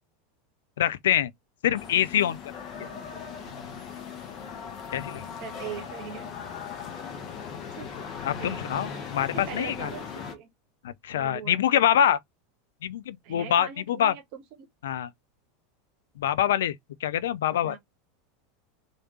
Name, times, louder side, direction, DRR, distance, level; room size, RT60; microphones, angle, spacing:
voice 1, 0.8-1.3 1.6-2.4 4.9-5.3 8.2-9.9 10.8-12.2 12.8-14.2 14.8-15.1 16.2-16.7 17.0-17.8, left 10 dB, 65° left, 0.4 m, -25 dB
sound 1, 1.7-10.3, left 6 dB, 40° left, 1.0 m, -38 dB
voice 2, 2.7-3.4 5.4-6.4 7.7-7.9 8.4-8.6 9.1-10.5 11.1-11.6 13.2-14.4 17.6-17.8, right 8 dB, 50° right, 0.9 m, -41 dB
3.2 x 2.7 x 2.9 m
figure-of-eight pair, 80°, 0 cm